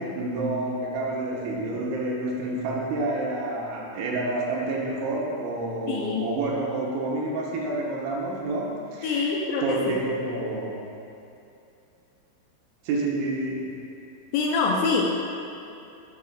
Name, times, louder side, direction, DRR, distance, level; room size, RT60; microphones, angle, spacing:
voice 1, 0.0-9.3 9.6-10.8 12.8-13.8, right 2 dB, 85° right, -2 dB, 3.2 m, -29 dB
voice 2, 5.9-6.3 9.0-10.0 14.3-15.1, left 4 dB, 80° left, -1 dB, 2.7 m, -25 dB
11.0 x 6.5 x 2.4 m, 2.7 s
omnidirectional pair, 5.4 m